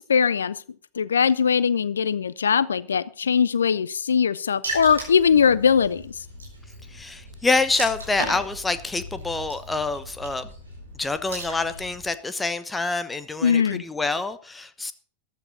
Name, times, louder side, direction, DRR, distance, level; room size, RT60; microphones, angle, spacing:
voice 1, 0.1-0.6 1.0-6.1 13.4-13.8, left 6 dB, 70° left, 19 dB, 0.7 m, -21 dB
Water / Splash splatter, 4.6-12.1, right 1 dB, 75° right, 7.1 m, -37 dB
voice 2, 6.9-10.5 11.0-14.9, left 3 dB, 10° left, 13 dB, 1.0 m, -26 dB
14.5 x 12.0 x 4.1 m, 0.42 s
figure-of-eight pair, 90°, 0 cm